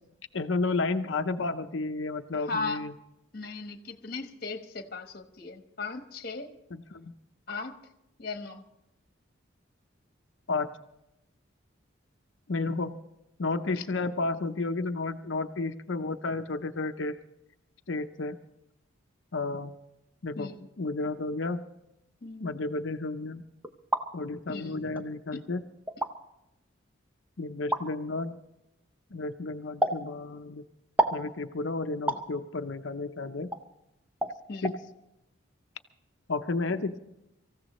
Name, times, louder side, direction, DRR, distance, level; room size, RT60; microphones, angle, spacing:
voice 1, 0.3-2.9 6.7-7.1 10.5-10.7 12.5-13.0 13.4-17.2 17.9-18.3 19.3-19.7 20.2-20.5 20.8-21.6 22.4-23.5 24.1-25.6 27.4-28.4 29.1-30.6 31.1-33.5 34.6-34.8 36.3-37.0, left 3 dB, 70° left, 8 dB, 0.7 m, -32 dB
voice 2, 2.3-2.8 3.3-6.5 7.5-7.8 8.2-8.6 13.7-13.8 20.4-20.7 22.2-22.6 24.5-24.8 25.3-25.5 34.5-34.7, left 3 dB, 50° left, 7 dB, 1.2 m, -37 dB
sound 1, 23.6-24.1 25.0-25.1 25.9-26.1 27.7-27.9 29.8-30.0 31.0-31.2 32.1-32.3 33.5-33.6 34.2-34.4 34.6-34.8, right 2 dB, 10° right, 0.7 m, -27 dB
25.0 x 15.0 x 3.1 m, 0.87 s
head